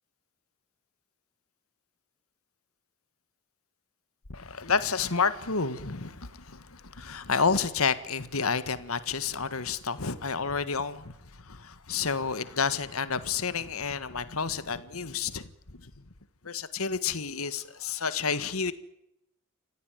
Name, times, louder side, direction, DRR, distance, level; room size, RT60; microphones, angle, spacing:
voice 1, 4.3-15.9 16.4-18.7, left 5 dB, 75° left, 1.7 m, -30 dB
28.5 x 15.5 x 9.2 m
head